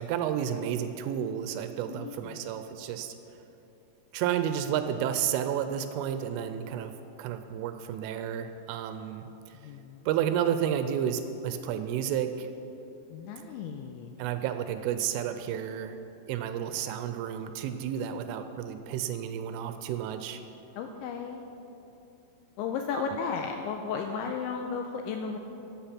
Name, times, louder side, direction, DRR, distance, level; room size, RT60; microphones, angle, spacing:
voice 1, 0.0-3.2 4.1-6.9 7.2-9.5 10.1-12.5 14.2-16.0 16.3-20.4 22.9-23.0, right 9 dB, 85° right, 9 dB, 3.0 m, -31 dB
voice 2, 1.9-2.5 9.6-10.1 13.1-14.1 20.8-21.5 22.6-25.4, left 6 dB, 85° left, 4 dB, 2.7 m, -34 dB
14.5 x 8.7 x 5.8 m, 2.9 s
omnidirectional pair, 5.8 m